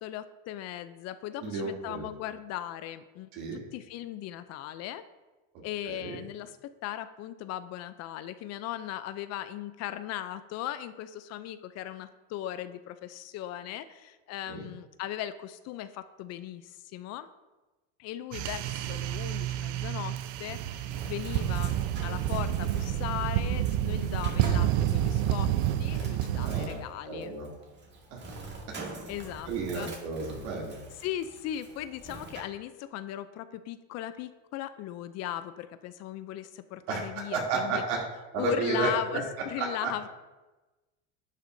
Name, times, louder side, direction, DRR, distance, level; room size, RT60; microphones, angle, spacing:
voice 1, 0.0-5.0 5.6-17.3 18.0-25.5 25.8-27.3 29.1-29.9 31.0-37.8 38.4-40.1, left 12 dB, 45° left, 12 dB, 0.5 m, -38 dB
voice 2, 1.4-2.1 3.3-3.6 5.9-6.2 14.5-14.7 26.4-26.7 27.1-27.5 28.1-28.2 29.5-30.8 36.9-38.0 38.3-39.2 39.6-39.9, right 4 dB, 70° right, -2 dB, 2.9 m, -32 dB
sound 1, 18.3-26.7, right 12 dB, 55° right, 0.6 m, -29 dB
Bird, 20.9-32.4, right 2 dB, 30° right, 1.9 m, -44 dB
11.0 x 8.1 x 2.7 m, 1.1 s
supercardioid pair, 125°, 37 cm